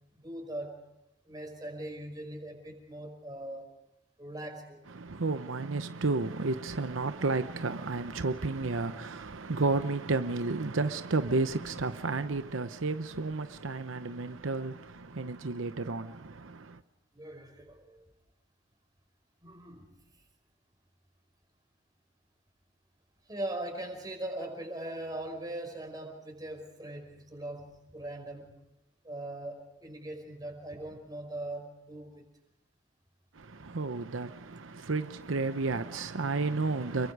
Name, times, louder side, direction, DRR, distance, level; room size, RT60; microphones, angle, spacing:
voice 1, 0.1-0.8 1.3-3.7 4.2-4.8 17.1-18.0 19.4-19.9 23.3-28.5 29.0-32.2, right 1 dB, 20° right, 5.3 m, -40 dB
voice 2, 4.9-16.8 33.4-37.1, right 3 dB, 90° right, 0.9 m, -32 dB
30.0 x 22.5 x 4.9 m
head